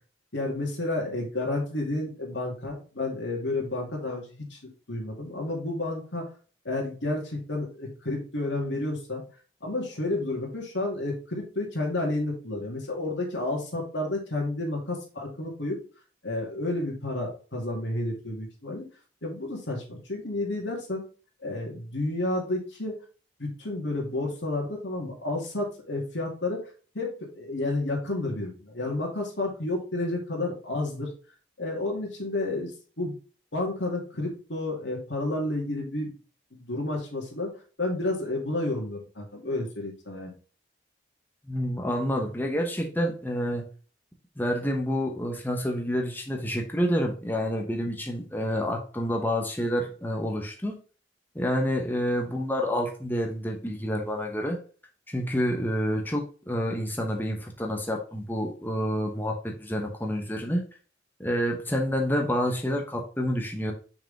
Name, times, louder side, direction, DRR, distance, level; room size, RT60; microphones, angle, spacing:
voice 1, 0.3-4.6 4.9-6.3 6.6-9.2 9.6-15.8 16.2-18.8 19.2-21.0 21.4-22.9 23.4-31.1 31.6-33.1 33.5-36.1 36.5-37.5 37.8-40.3, left 2 dB, 90° left, 0 dB, 2.5 m, -31 dB
voice 2, 41.5-43.6 44.4-50.8 51.3-54.6 55.1-60.6 61.2-63.7, equal, 10° left, 1 dB, 0.9 m, -28 dB
6.1 x 4.8 x 3.5 m, 0.38 s
head